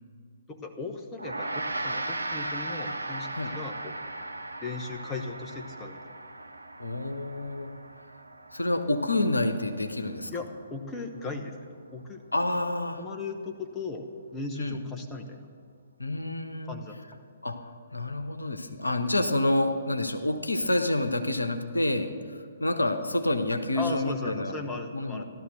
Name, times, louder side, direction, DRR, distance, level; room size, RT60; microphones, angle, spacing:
voice 1, 0.5-4.0 4.6-6.0 10.3-12.2 13.0-15.5 16.7-17.0 23.8-25.2, left 3 dB, 15° left, 3 dB, 1.2 m, -37 dB
Gong, 1.2-10.7, right 2 dB, 75° right, 0.9 m, -37 dB
voice 2, 6.8-7.7 8.5-10.3 12.3-13.0 14.6-14.8 16.0-16.7 17.4-17.6 17.9-24.5 24.9-25.2, left 2 dB, 80° left, 8 dB, 1.1 m, -28 dB
15.5 x 12.0 x 6.5 m, 2.3 s
figure-of-eight pair, 125°, 0 cm